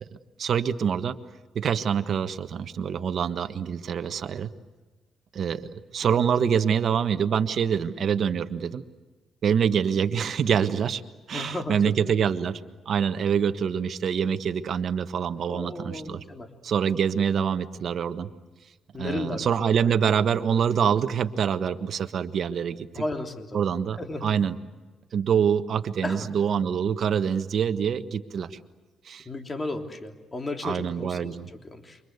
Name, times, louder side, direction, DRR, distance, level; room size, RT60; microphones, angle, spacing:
voice 1, 0.4-1.2 1.5-4.5 5.3-5.6 5.9-8.8 9.4-11.0 11.3-12.6 12.8-16.2 16.6-18.3 19.0-23.0 23.5-24.5 25.1-28.6 29.0-29.2 30.6-31.5, right 7 dB, 60° right, 10 dB, 1.4 m, -25 dB
voice 2, 11.3-12.1 15.5-16.5 18.9-19.5 22.9-23.6 24.0-24.4 26.0-26.3 29.2-32.0, left 2 dB, 25° left, 4 dB, 3.3 m, -34 dB
28.5 x 25.5 x 8.2 m, 1.2 s
cardioid pair, 90°, 0 cm